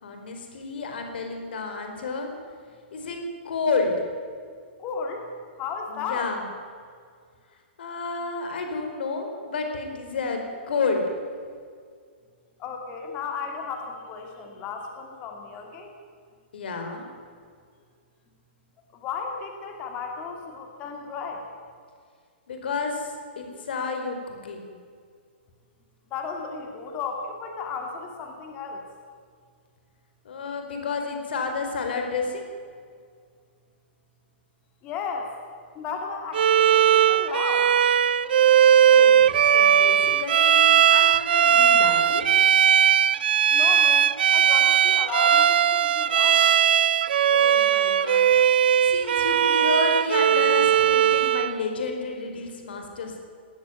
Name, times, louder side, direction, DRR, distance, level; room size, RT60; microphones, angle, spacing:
voice 1, 0.0-2.3 2.9-3.2 3.4-3.9 5.9-6.4 7.8-11.0 16.5-17.1 22.5-24.7 30.2-32.5 38.8-42.3 47.3-48.3 48.8-53.2, left 4 dB, 60° left, 4 dB, 4.7 m, -30 dB
voice 2, 4.8-5.3 5.6-6.3 12.6-15.9 18.9-21.5 26.1-28.8 34.8-35.3 35.8-37.7 43.5-46.5, left 5 dB, 20° left, 3 dB, 2.2 m, -34 dB
Bowed string instrument, 36.3-51.6, right 9 dB, 55° right, 0.7 m, -19 dB
18.5 x 18.5 x 9.4 m, 2.1 s
hypercardioid pair, 180°, 6 cm